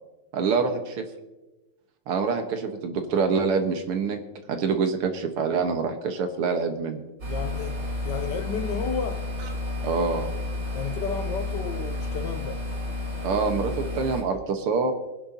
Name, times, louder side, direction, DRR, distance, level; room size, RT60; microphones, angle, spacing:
voice 1, 0.3-1.0 2.1-4.2 4.5-7.0 9.8-10.3 13.2-14.9, right 5 dB, 90° right, 2.2 m, -26 dB
sound 1, 7.2-14.2, left 2 dB, 55° right, 5.9 m, -31 dB
voice 2, 7.3-9.3 10.7-12.6, left 6 dB, 65° left, 1.1 m, -32 dB
23.5 x 10.0 x 2.8 m
omnidirectional pair, 2.4 m